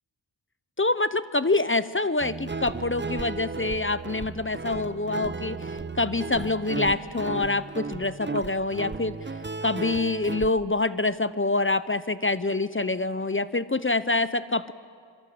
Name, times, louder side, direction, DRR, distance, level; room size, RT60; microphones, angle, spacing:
voice 1, 0.8-9.2 9.6-14.7, left 2 dB, 25° left, 14 dB, 0.7 m, -26 dB
Guitar, 2.2-10.5, right 4 dB, 25° right, 0.6 m, -35 dB
27.0 x 23.0 x 7.9 m, 2.2 s
wide cardioid pair, 50°, 46 cm